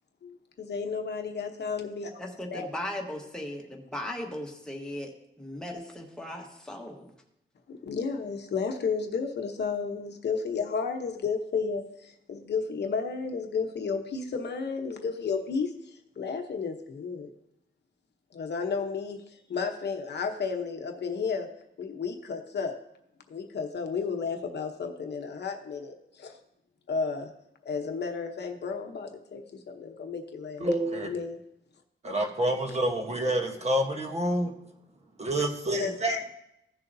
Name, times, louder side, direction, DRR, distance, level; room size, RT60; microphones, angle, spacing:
voice 1, 0.2-2.7 7.7-17.3 18.3-21.5 21.8-22.8 23.3-26.4 26.9-27.3 27.6-30.7 31.0-31.4 35.4-35.5 35.7-36.2, left 5 dB, 55° left, 4 dB, 0.9 m, -32 dB
voice 2, 2.2-5.1 5.4-7.1, left 1 dB, 5° left, 0 dB, 1.3 m, -37 dB
voice 3, 30.6-31.1 32.0-34.5 35.2-36.2, right 1 dB, 30° right, 3 dB, 1.1 m, -28 dB
16.0 x 6.7 x 2.7 m, 0.83 s
wide cardioid pair, 145°, 21 cm